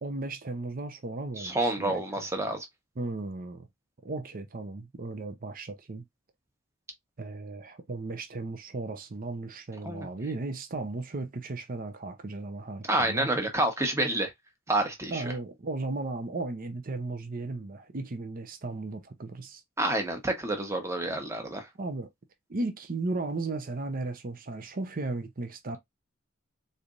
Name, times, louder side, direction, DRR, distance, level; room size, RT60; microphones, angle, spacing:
voice 1, 0.0-2.3 3.0-3.7 4.0-6.0 7.2-13.3 15.1-19.6 21.8-22.1 22.5-25.8, right 2 dB, 40° right, 0.6 m, -35 dB
voice 2, 1.4-2.6 9.8-10.1 12.9-14.3 14.7-15.3 19.8-21.7, right 1 dB, 15° right, 1.0 m, -28 dB
4.0 x 3.3 x 2.5 m
head